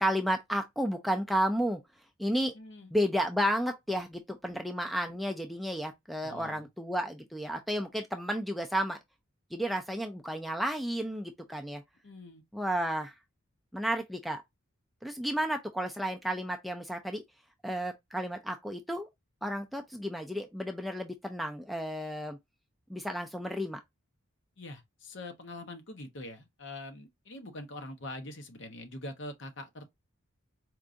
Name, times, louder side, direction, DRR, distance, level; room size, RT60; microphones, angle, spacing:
voice 1, 0.0-1.8 2.2-2.5 2.9-9.0 9.5-11.8 12.5-13.1 13.7-14.4 15.0-17.2 17.6-19.1 19.4-22.4 22.9-23.8, equal, ahead, 0.3 m, -32 dB
voice 2, 2.5-2.9 6.2-6.7 12.0-12.4 24.6-29.9, left 1 dB, 55° left, 0.9 m, -44 dB
4.5 x 2.6 x 2.4 m
head